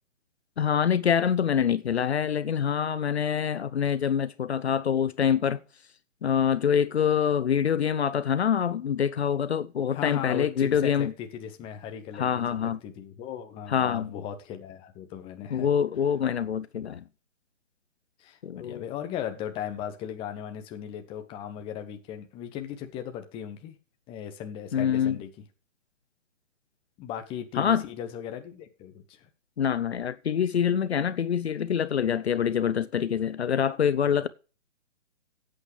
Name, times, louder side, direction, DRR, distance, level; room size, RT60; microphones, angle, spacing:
voice 1, 0.6-5.6 6.2-11.1 12.1-12.8 13.7-14.1 15.5-17.0 18.4-18.8 24.7-25.2 27.6-27.9 29.6-34.3, left 8 dB, 60° left, 0.7 m, -25 dB
voice 2, 9.9-15.7 18.2-23.7 24.1-25.3 27.0-29.3, left 9 dB, 15° left, 1.3 m, -37 dB
16.0 x 8.8 x 3.2 m
figure-of-eight pair, 140°, 37 cm